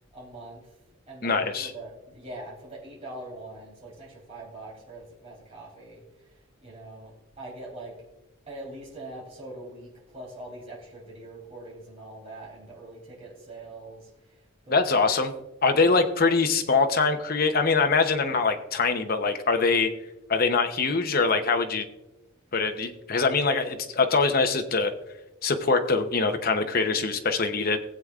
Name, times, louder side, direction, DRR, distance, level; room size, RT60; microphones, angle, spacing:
voice 1, 0.1-0.7 1.1-8.0 8.5-15.0 15.7-16.0, right 1 dB, 30° right, -4 dB, 3.4 m, -43 dB
voice 2, 1.2-1.7 14.7-15.3 15.6-19.9 20.3-21.9 22.5-24.9 25.4-27.8, left 4 dB, 45° left, 6 dB, 0.8 m, -23 dB
17.5 x 8.0 x 2.4 m, 0.98 s
head